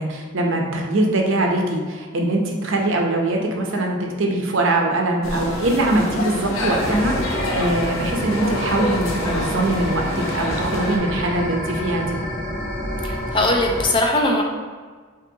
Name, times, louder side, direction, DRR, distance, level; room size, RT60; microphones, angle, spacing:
voice 1, 0.0-12.2, right 2 dB, 70° right, 1 dB, 0.6 m, -22 dB
sound 1, 5.2-11.0, left 1 dB, 85° left, 0.7 m, -27 dB
sound 2, 6.7-13.9, equal, 40° left, 0.9 m, -28 dB
voice 2, 13.0-14.4, left 1 dB, 25° left, 1 dB, 0.4 m, -20 dB
5.3 x 2.6 x 2.7 m, 1.5 s
head